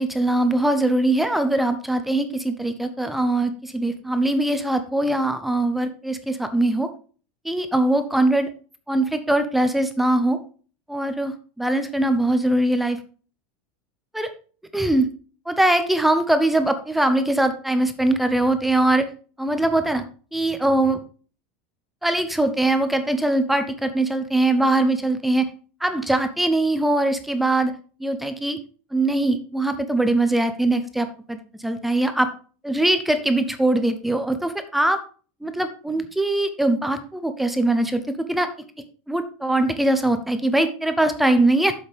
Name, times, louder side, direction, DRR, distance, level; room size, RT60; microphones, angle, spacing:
voice 1, 0.0-6.9 7.4-8.5 8.9-10.4 10.9-13.0 14.1-14.3 14.7-15.1 15.5-19.1 19.4-20.1 20.3-21.0 22.0-25.5 25.8-27.7 28.0-28.6 28.9-32.3 32.6-35.0 35.4-38.5 39.1-41.7, right 1 dB, 5° right, 9 dB, 0.6 m, -21 dB
8.2 x 7.2 x 3.4 m, 0.39 s
supercardioid pair, 155°, 5 cm